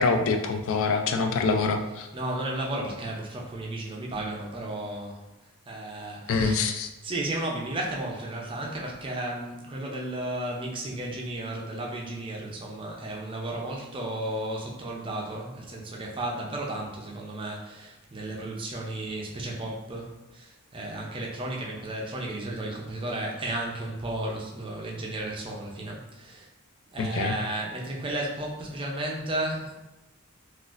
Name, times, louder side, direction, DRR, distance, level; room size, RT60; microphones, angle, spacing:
voice 1, 0.0-2.1 6.3-6.9 27.0-27.3, left 4 dB, 60° left, 5 dB, 0.3 m, -25 dB
voice 2, 2.1-5.2 5.7-26.5 26.9-29.7, right 1 dB, 25° right, -2 dB, 0.5 m, -34 dB
3.9 x 2.4 x 2.4 m, 1.0 s
head